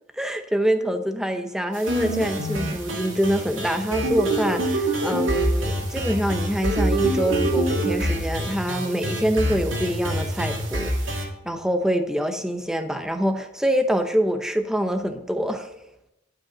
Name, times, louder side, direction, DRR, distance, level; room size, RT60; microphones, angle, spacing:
voice 1, 0.1-15.7, equal, 5° right, 7 dB, 0.7 m, -25 dB
sound 1, 1.7-11.2, right 1 dB, 85° right, 2.2 m, -25 dB
11.5 x 5.2 x 7.1 m, 0.91 s
head